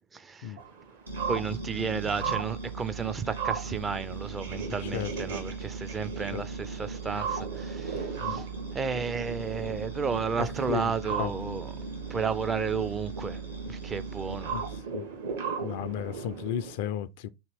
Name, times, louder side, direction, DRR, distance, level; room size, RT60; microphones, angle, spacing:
voice 1, 0.1-0.6 1.3-8.5 8.7-11.7 12.1-13.4 13.7-14.5, right 6 dB, 20° right, 0.4 m, -32 dB
sound 1, 0.6-16.8, right 6 dB, 65° right, 1.0 m, -38 dB
sound 2, 1.1-14.8, right 4 dB, 85° right, 0.9 m, -39 dB
voice 2, 10.4-11.3 14.5-14.6 14.9-15.1 15.6-17.3, left 10 dB, 55° left, 0.3 m, -34 dB
2.9 x 2.9 x 4.4 m
figure-of-eight pair, 85°, 0 cm